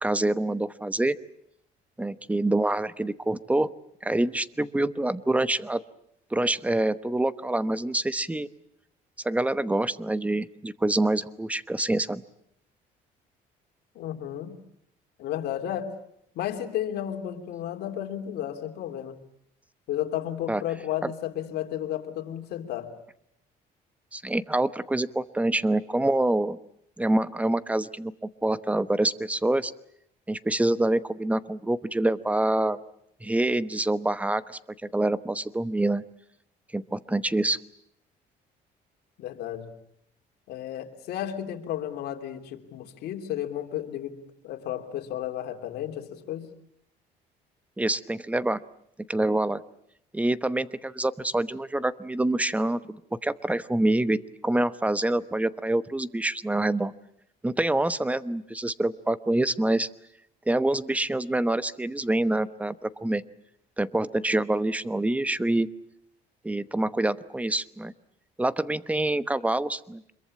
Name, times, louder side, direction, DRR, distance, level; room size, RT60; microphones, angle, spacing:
voice 1, 0.0-1.2 2.0-3.7 4.0-5.8 6.3-8.5 9.2-12.2 20.5-20.6 21.0-21.1 24.1-26.6 27.0-28.1 28.4-29.7 30.3-32.8 33.2-36.0 36.7-37.6 47.8-48.6 49.1-49.6 50.1-56.9 57.4-59.9 60.5-63.2 63.8-65.7 66.4-67.9 68.4-70.0, right 1 dB, 10° right, 15 dB, 1.0 m, -26 dB
voice 2, 13.9-14.6 15.2-15.9 16.3-19.2 19.9-22.9 39.2-39.7 40.5-44.2 44.4-46.5, left 11 dB, 75° left, 5 dB, 3.2 m, -33 dB
26.5 x 22.5 x 8.6 m, 0.73 s
cardioid pair, 110°, 17 cm